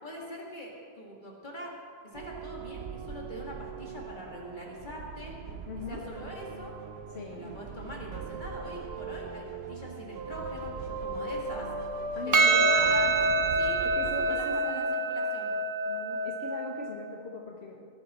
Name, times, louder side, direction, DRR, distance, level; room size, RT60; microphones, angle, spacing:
voice 1, 0.0-1.8 2.0-5.3 5.9-6.7 7.3-11.7 12.2-13.2 13.5-15.5, equal, 50° left, -2 dB, 2.1 m, -42 dB
sound 1, 2.1-14.3, right 3 dB, 80° right, 0.9 m, -39 dB
voice 2, 5.7-6.1 7.1-7.5 12.1-12.8 13.8-15.0 15.9-18.0, left 3 dB, 85° left, 0 dB, 1.3 m, -40 dB
Percussion, 12.3-17.0, right 3 dB, 25° right, 0.5 m, -26 dB
18.5 x 9.0 x 4.2 m, 2.3 s
omnidirectional pair, 1.1 m